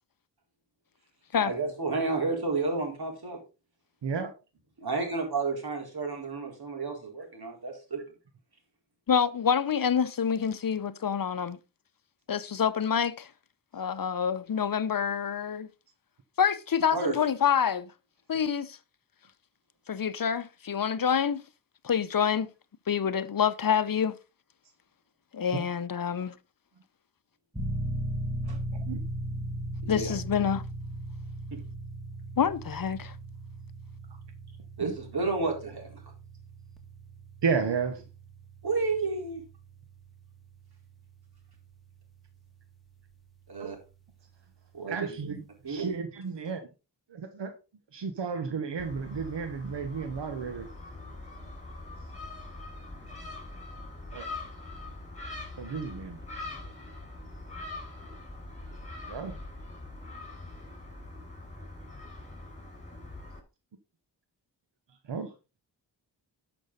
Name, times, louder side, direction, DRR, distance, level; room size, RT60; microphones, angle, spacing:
voice 1, 1.4-3.4 4.8-8.0 16.9-17.1 28.5-28.6 29.8-30.1 34.8-35.9 38.6-39.4 43.5-43.8 44.7-45.1 45.6-45.9, right 3 dB, 60° right, 4.3 m, -31 dB
voice 2, 9.1-11.6 12.3-13.3 13.7-15.7 16.4-17.9 18.3-18.8 19.9-21.4 21.8-22.5 22.9-24.1 25.3-26.4 29.9-30.6 32.4-33.1, left 7 dB, 55° left, 0.8 m, -27 dB
sound 1, 27.5-42.0, right 1 dB, ahead, 2.3 m, -38 dB
voice 3, 37.4-38.0 43.6-43.7 44.8-45.4 45.7-46.7 47.1-47.5 47.9-50.7 54.1-54.3 55.6-56.2 59.1-59.3 65.1-65.3, right 5 dB, 80° right, 1.3 m, -32 dB
Gull seagull, 48.8-63.4, left 2 dB, 15° left, 4.7 m, -43 dB
12.0 x 6.2 x 4.0 m
cardioid pair, 60°, 42 cm